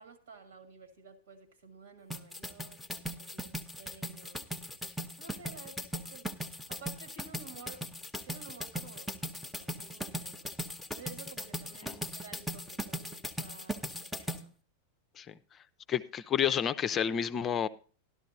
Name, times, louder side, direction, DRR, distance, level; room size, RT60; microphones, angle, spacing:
voice 1, 0.0-6.3 6.6-7.9 8.3-10.5 10.9-14.5, right 4 dB, 65° right, 2.0 m, -53 dB
sound 1, 2.1-14.4, equal, ahead, 0.8 m, -38 dB
voice 2, 15.9-17.7, left 9 dB, 25° left, 0.5 m, -30 dB
13.0 x 12.0 x 2.7 m
figure-of-eight pair, 90°, 0 cm